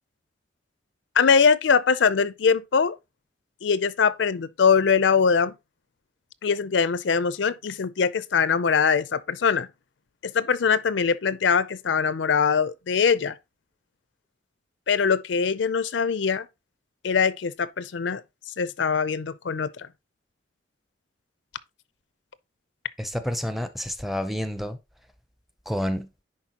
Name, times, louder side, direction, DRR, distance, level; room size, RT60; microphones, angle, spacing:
voice 1, 1.2-3.0 3.6-5.5 6.4-9.7 10.2-13.4 14.9-16.5 17.0-18.2 18.6-19.9, left 6 dB, 75° left, 0.5 m, -22 dB
voice 2, 23.0-24.8 25.7-26.1, equal, ahead, 0.5 m, -29 dB
10.5 x 4.3 x 2.9 m
head